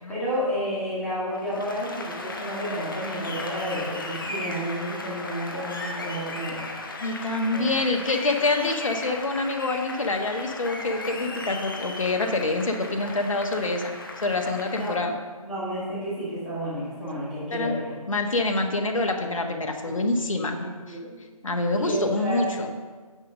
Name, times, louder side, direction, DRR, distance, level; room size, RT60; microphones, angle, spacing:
voice 1, 0.1-6.7 7.5-7.7 14.7-15.0 15.4-17.9 19.8-20.0 20.3-21.1 21.8-22.4, equal, ahead, -14 dB, 1.9 m, -31 dB
Applause, 1.3-15.0, left 2 dB, 35° left, 0.9 m, -36 dB
voice 2, 7.0-13.9 14.2-15.2 17.5-17.8 18.1-21.0 21.4-22.7, left 2 dB, 60° left, 4 dB, 1.3 m, -26 dB
9.6 x 5.1 x 6.5 m, 1.4 s
figure-of-eight pair, 165°, 19 cm